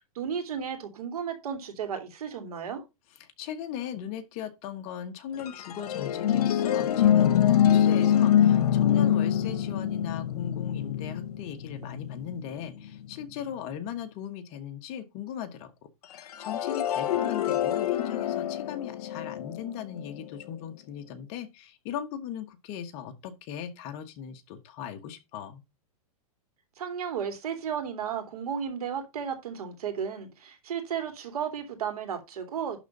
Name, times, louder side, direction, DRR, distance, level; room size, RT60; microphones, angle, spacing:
voice 1, 0.1-2.8 26.8-32.8, right 7 dB, 80° right, 3.0 m, -34 dB
voice 2, 3.2-25.6, left 9 dB, 35° left, 1.3 m, -38 dB
sound 1, 5.4-13.0 16.2-20.3, left 10 dB, 80° left, 1.1 m, -25 dB
11.5 x 3.9 x 5.5 m
hypercardioid pair, 155°, 19 cm